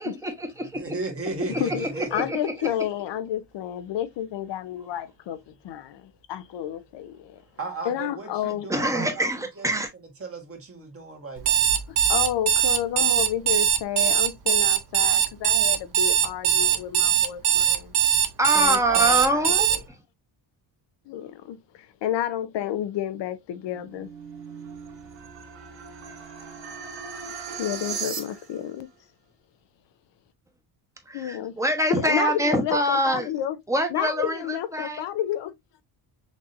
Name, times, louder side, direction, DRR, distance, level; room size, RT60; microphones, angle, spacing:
voice 1, 0.0-0.8 1.5-2.4 8.7-9.9 18.4-19.7 31.1-33.3 33.7-35.0, right 1 dB, 5° right, 1.1 m, -25 dB
voice 2, 0.7-2.3 2.6-2.7 7.6-9.3 9.6-9.7 10.2-11.7 18.9-19.2, right 3 dB, 30° right, 1.5 m, -35 dB
voice 3, 2.1-5.4 5.6-7.4 7.8-8.7 12.1-17.9 18.5-19.4 21.1-24.1 27.6-28.9 31.1-31.6 31.9-33.6 33.9-35.5, left 11 dB, 70° left, 0.7 m, -30 dB
Alarm, 11.4-19.8, right 10 dB, 55° right, 0.7 m, -21 dB
sound 1, 23.5-28.7, right 6 dB, 75° right, 1.6 m, -38 dB
6.1 x 2.7 x 2.5 m
cardioid pair, 135°, 45 cm